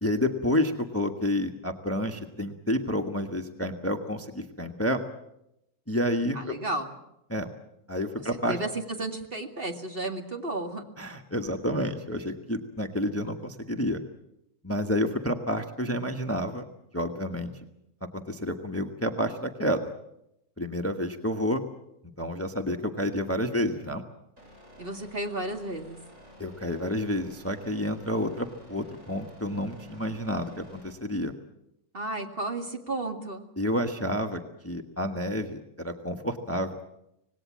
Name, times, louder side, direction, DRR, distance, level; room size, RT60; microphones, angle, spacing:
voice 1, 0.0-5.0 5.9-6.5 7.3-7.5 7.9-8.6 11.0-14.0 14.6-16.6 16.9-17.5 18.1-19.9 20.6-21.6 22.2-24.0 26.4-31.3 33.6-36.8, equal, 10° left, 5 dB, 1.3 m, -29 dB
voice 2, 6.3-6.9 8.2-10.8 24.8-26.0 31.9-33.5, right 2 dB, 40° right, 4 dB, 2.4 m, -33 dB
sound 1, 24.4-30.9, equal, 60° right, 7.1 m, -52 dB
26.0 x 19.0 x 7.5 m, 0.83 s
omnidirectional pair, 1.6 m